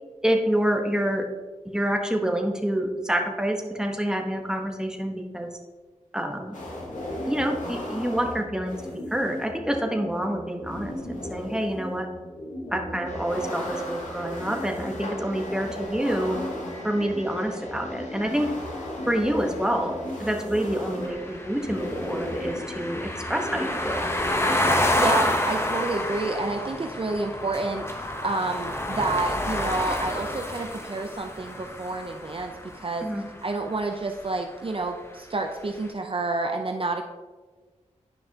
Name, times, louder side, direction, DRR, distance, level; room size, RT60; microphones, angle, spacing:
voice 1, 0.2-1.2 1.6-5.5 6.1-6.6 7.3-12.1 12.7-16.4 16.8-18.5 19.1-24.0 33.0-33.2, right 1 dB, 5° right, 3 dB, 1.2 m, -27 dB
sound 1, 6.5-25.4, left 1 dB, 85° left, 1.7 m, -36 dB
sound 2, 13.1-23.1, left 1 dB, 65° left, 1.5 m, -43 dB
sound 3, 21.0-33.1, left 1 dB, 20° left, 0.9 m, -28 dB
voice 2, 25.0-33.1 33.4-37.0, right 2 dB, 45° right, 4 dB, 0.6 m, -29 dB
9.8 x 5.4 x 2.9 m, 1.4 s
cardioid pair, 45°, 13 cm